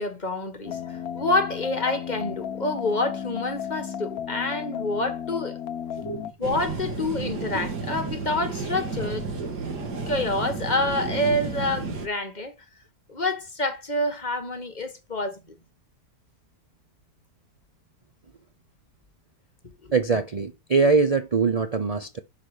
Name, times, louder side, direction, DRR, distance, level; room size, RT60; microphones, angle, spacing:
voice 1, 0.0-5.6 6.4-9.3 10.1-12.5 13.1-15.5 19.8-19.9, left 2 dB, 30° left, 1.4 m, -27 dB
sound 1, 0.7-6.3, left 8 dB, 65° left, 1.3 m, -34 dB
sound 2, 6.4-12.1, right 4 dB, 90° right, 2.3 m, -32 dB
voice 2, 19.9-22.2, right 4 dB, 60° right, 0.4 m, -23 dB
6.0 x 5.8 x 4.9 m
omnidirectional pair, 1.7 m